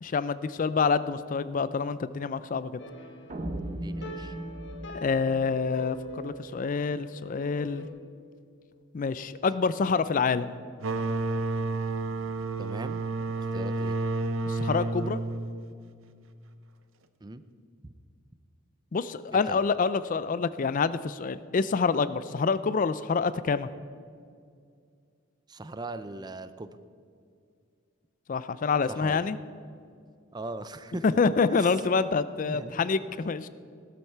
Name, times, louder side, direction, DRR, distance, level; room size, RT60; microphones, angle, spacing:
voice 1, 0.0-2.8 4.9-7.9 8.9-10.5 14.5-15.2 18.9-23.7 28.3-29.4 31.0-33.5, left 5 dB, 40° left, 15 dB, 0.4 m, -27 dB
sound 1, 2.8-7.9, left 1 dB, 60° left, 1.4 m, -44 dB
sound 2, 3.3-6.4, right 1 dB, 35° right, 0.9 m, -38 dB
voice 2, 3.8-4.3 12.6-13.0 13.5-14.0 17.2-17.4 17.8-17.9 19.3-19.6 25.5-26.7 28.9-29.3 30.3-31.2 31.5-31.7 32.5-32.8 33.1-33.2, right 2 dB, 20° right, 12 dB, 0.5 m, -39 dB
sound 3, 10.8-16.2, right 3 dB, 75° right, 0.8 m, -31 dB
16.0 x 13.0 x 4.5 m, 2.3 s
head